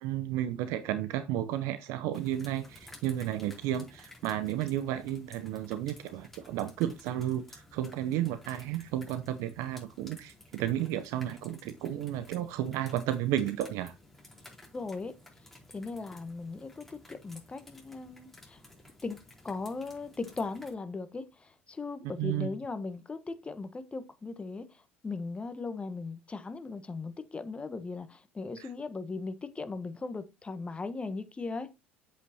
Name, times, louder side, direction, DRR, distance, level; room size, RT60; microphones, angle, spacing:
voice 1, 0.0-14.0 22.2-22.5 28.6-28.7, right 12 dB, 60° right, 0.7 m, -32 dB
sound 1, 2.1-20.7, left 1 dB, 5° left, 4.2 m, -54 dB
voice 2, 14.7-15.1 15.7-18.6 19.0-19.2 19.4-31.7, left 3 dB, 20° left, 1.2 m, -38 dB
8.1 x 8.1 x 2.9 m
figure-of-eight pair, 70°, 6 cm